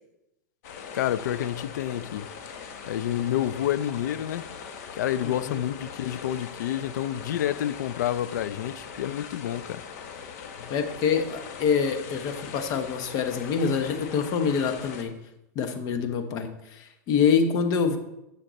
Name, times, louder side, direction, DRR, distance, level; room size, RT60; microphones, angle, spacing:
sound 1, 0.6-15.0, left 6 dB, 60° left, 1.2 m, -41 dB
voice 1, 0.9-2.3 2.9-4.4 4.9-9.8 10.6-10.7, left 11 dB, 80° left, 0.4 m, -29 dB
voice 2, 5.2-5.6 10.7-15.1 15.5-18.0, left 6 dB, 45° left, 1.1 m, -26 dB
8.9 x 6.5 x 4.1 m
hypercardioid pair, 125°, 10 cm